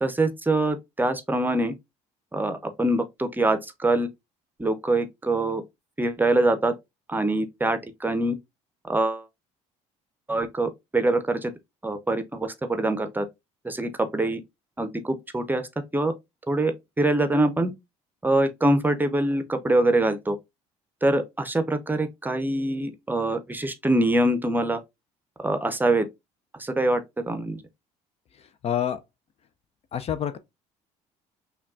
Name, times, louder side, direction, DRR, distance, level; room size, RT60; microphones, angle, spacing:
voice 1, 0.0-1.7 2.3-4.1 4.6-5.6 6.0-6.7 7.1-8.4 8.9-9.2 10.3-11.5 11.8-13.3 13.6-14.4 14.8-15.6 15.9-16.1 16.5-17.7 18.2-20.4 21.0-24.8 25.4-26.1 26.6-27.6, right 2 dB, 10° right, 0.6 m, -24 dB
voice 2, 28.6-29.0 29.9-30.4, left 9 dB, 40° left, 0.4 m, -27 dB
5.7 x 2.3 x 2.4 m
supercardioid pair, 75°, 15 cm